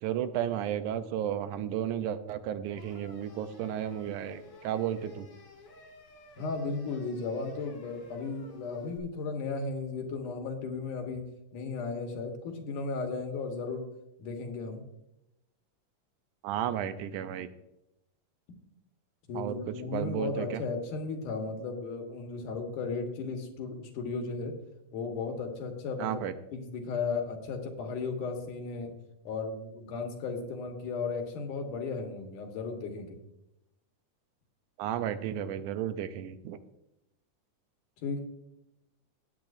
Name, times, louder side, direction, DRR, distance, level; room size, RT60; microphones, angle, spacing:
voice 1, 0.0-5.3 16.4-17.5 19.4-19.6 19.9-20.6 26.0-26.3 34.8-36.6, right 10 dB, 85° right, 11 dB, 2.1 m, -33 dB
sound 1, 2.8-9.0, left 2 dB, 50° left, 2.6 m, -52 dB
voice 2, 6.4-11.2 11.5-13.9 14.2-14.8 19.3-24.5 24.9-26.2 26.5-28.9 29.2-33.2 38.0-38.2, left 4 dB, 90° left, 3 dB, 3.0 m, -35 dB
15.0 x 9.4 x 2.6 m, 0.88 s
omnidirectional pair, 3.5 m